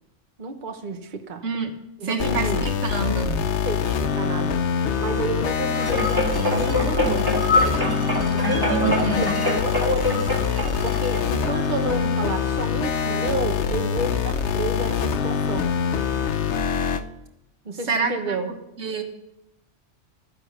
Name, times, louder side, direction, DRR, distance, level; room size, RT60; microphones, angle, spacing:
voice 1, 0.4-1.4 2.0-2.7 3.5-4.6 5.0-7.4 7.6-7.8 8.3-15.7 17.6-18.5, right 3 dB, 45° right, 6 dB, 1.2 m, -30 dB
voice 2, 2.0-3.5 8.8-9.3 17.9-18.4 18.8-19.0, right 4 dB, 90° right, 5 dB, 1.9 m, -27 dB
sound 1, 2.2-17.0, left 7 dB, 70° left, 1.1 m, -24 dB
sound 2, 5.7-12.3 12.8-12.9, left 1 dB, 20° right, 2.8 m, -25 dB
13.0 x 10.0 x 6.7 m, 0.88 s
omnidirectional pair, 1.2 m